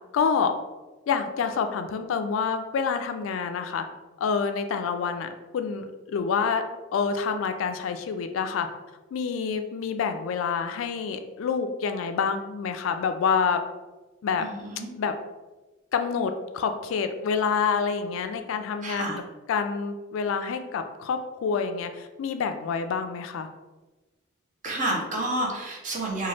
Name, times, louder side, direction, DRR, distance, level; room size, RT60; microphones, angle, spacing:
voice 1, 0.1-0.5 1.1-3.8 4.2-6.6 6.9-8.7 9.1-13.6 14.2-14.5 15.0-15.1 15.9-19.1 19.5-23.5, left 6 dB, 90° left, 8 dB, 0.3 m, -27 dB
voice 2, 14.4-14.9 18.8-19.2 24.6-26.3, right 1 dB, 40° right, -1 dB, 0.6 m, -30 dB
2.9 x 2.3 x 3.2 m, 1.2 s
head